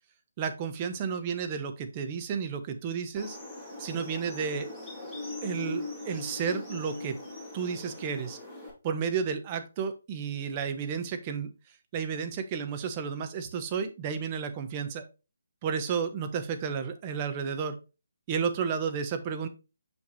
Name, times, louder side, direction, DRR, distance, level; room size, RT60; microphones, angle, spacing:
voice 1, 0.4-3.4 3.8-4.7 5.4-7.2 7.5-8.4 8.8-11.5 11.9-15.0 15.6-17.8 18.3-19.5, right 6 dB, 25° right, 8 dB, 0.9 m, -32 dB
sound 1, 3.2-8.7, left 2 dB, 5° right, 2.4 m, -40 dB
6.3 x 5.8 x 3.2 m, 0.30 s
figure-of-eight pair, 145°, 0 cm